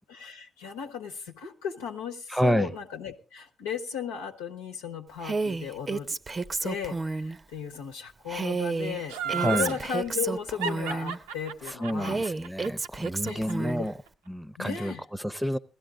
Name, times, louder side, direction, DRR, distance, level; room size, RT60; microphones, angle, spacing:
voice 1, 0.1-6.1 6.6-12.2 13.2-13.9 14.6-15.0, left 7 dB, 85° left, 1.1 m, -36 dB
voice 2, 2.3-2.7 9.4-9.7 11.7-13.9 14.3-14.9 15.2-15.6, equal, 5° right, 0.7 m, -29 dB
Female speech woman speaking, 5.2-7.4 8.3-11.2 12.0-13.9, right 3 dB, 30° right, 0.6 m, -31 dB
Laughter, 9.1-9.8 10.6-13.7 14.1-14.2, right 7 dB, 85° right, 0.7 m, -32 dB
16.5 x 12.0 x 3.8 m
hypercardioid pair, 45°, 0 cm